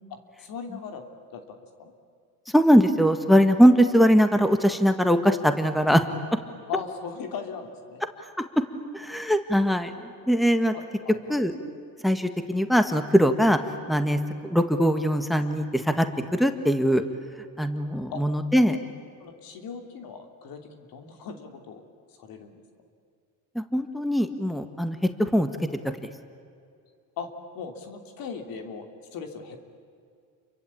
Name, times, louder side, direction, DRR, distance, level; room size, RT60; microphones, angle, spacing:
voice 1, 0.1-1.0 1.3-1.9 6.7-8.0 10.7-11.4 18.1-18.2 19.2-21.8 22.2-22.5 27.2-27.3 27.5-29.6, left 6 dB, 75° left, 5 dB, 3.3 m, -38 dB
voice 2, 2.5-6.0 8.4-8.5 8.9-9.9 10.3-10.7 11.3-11.5 12.0-13.6 13.9-16.0 16.3-17.0 17.6-18.8 23.5-25.5, equal, ahead, 8 dB, 1.7 m, -21 dB
29.5 x 23.5 x 8.7 m, 2.3 s
cardioid pair, 100°, 35 cm